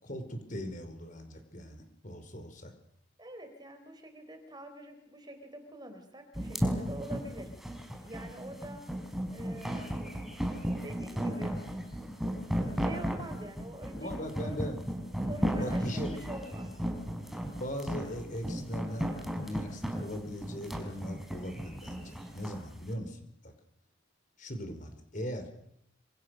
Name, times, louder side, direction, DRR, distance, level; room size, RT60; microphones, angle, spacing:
voice 1, 0.0-2.7 14.0-14.8 15.6-16.1 17.6-23.5 24.4-25.5, equal, 40° left, 6 dB, 5.2 m, -39 dB
voice 2, 3.2-7.5 8.0-8.8 9.3-10.1 10.8-11.6 12.7-14.1 14.4-14.7 15.2-16.7, right 1 dB, 20° right, 7 dB, 4.2 m, -46 dB
sound 1, 6.4-22.6, equal, ahead, 4.7 m, -34 dB
27.5 x 27.0 x 6.6 m, 0.74 s
head